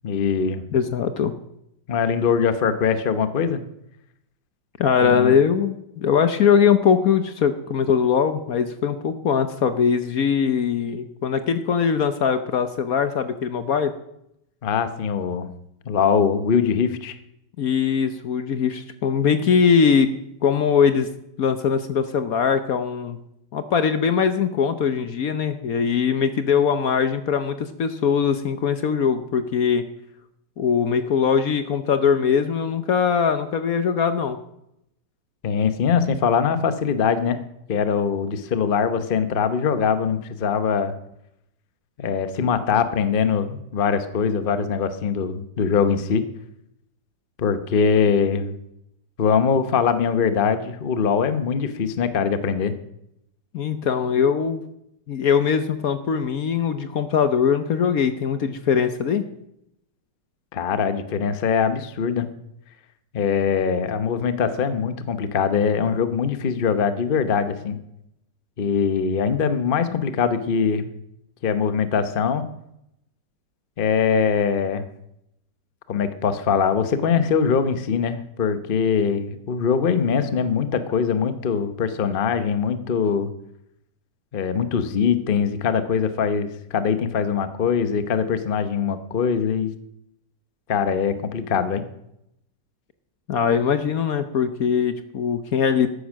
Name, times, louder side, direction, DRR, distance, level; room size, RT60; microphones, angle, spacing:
voice 1, 0.0-0.6 1.9-3.6 5.0-5.4 14.6-15.5 15.9-17.2 35.4-37.4 37.7-40.9 42.0-46.2 47.4-48.5 49.2-52.7 60.5-62.3 63.1-67.8 68.6-70.9 71.4-72.4 73.8-74.9 75.9-83.3 84.3-89.7 90.7-91.8, left 6 dB, 40° left, 11 dB, 0.9 m, -22 dB
voice 2, 0.7-1.4 4.8-13.9 17.6-20.1 20.4-21.1 21.4-23.2 23.5-29.8 30.6-34.4 53.5-54.6 55.1-59.2 93.3-95.9, left 7 dB, 60° left, 10 dB, 1.1 m, -21 dB
13.5 x 10.5 x 6.3 m, 0.80 s
omnidirectional pair, 2.0 m